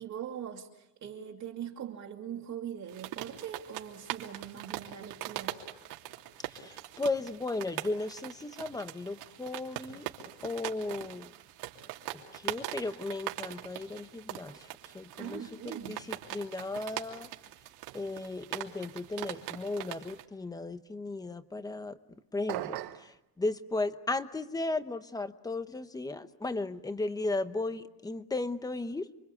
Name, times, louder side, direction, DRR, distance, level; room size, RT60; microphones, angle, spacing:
voice 1, 0.0-5.6 15.2-16.0, right 9 dB, 45° right, 2.5 m, -41 dB
sound 1, 2.9-20.2, right 14 dB, 90° right, 3.0 m, -42 dB
voice 2, 6.4-10.1 10.4-11.3 12.1-17.3 17.9-29.1, left 2 dB, 10° left, 0.9 m, -36 dB
sound 2, 22.5-23.1, right 14 dB, 60° right, 1.2 m, -36 dB
29.5 x 24.5 x 8.3 m
cardioid pair, 165°, 41 cm